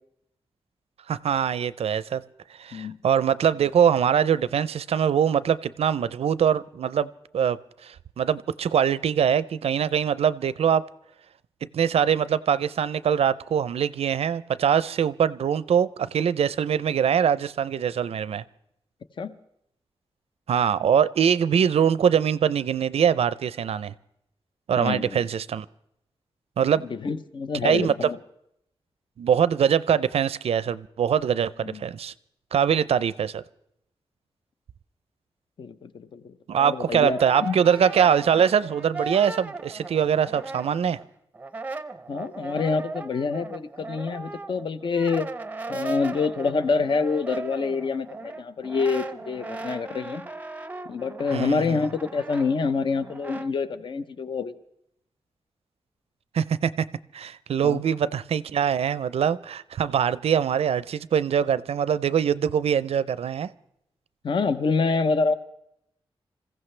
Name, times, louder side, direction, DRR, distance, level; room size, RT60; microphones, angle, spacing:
voice 1, 1.1-2.2 2.6-7.6 7.8-10.8 11.7-18.4 20.5-23.9 24.7-25.7 26.6-26.8 27.6-27.9 29.2-32.1 32.5-33.4 36.5-41.0 51.3-51.8 56.3-56.9 57.1-63.5, right 8 dB, 85° right, 0.5 m, -23 dB
voice 2, 24.8-25.2 26.8-28.2 31.6-31.8 35.6-37.6 42.1-45.3 45.7-50.3 50.9-54.5 57.6-57.8 64.2-65.3, left 4 dB, 55° left, 0.7 m, -27 dB
Brass instrument, 36.6-41.1 41.3-53.5, right 3 dB, 15° right, 0.6 m, -37 dB
26.5 x 15.0 x 3.3 m
wide cardioid pair, 175°, 10 cm